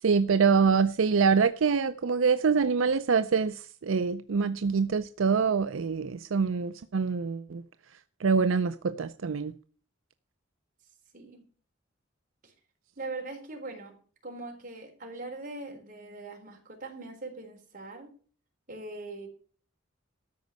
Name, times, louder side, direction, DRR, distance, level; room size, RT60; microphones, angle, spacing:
voice 1, 0.0-7.6 8.2-9.5, right 5 dB, 80° right, 0.5 m, -25 dB
voice 2, 11.1-11.4 12.4-12.5 13.0-13.9 14.2-18.1 18.7-19.3, right 2 dB, 40° right, 4.0 m, -41 dB
13.5 x 5.2 x 9.1 m
head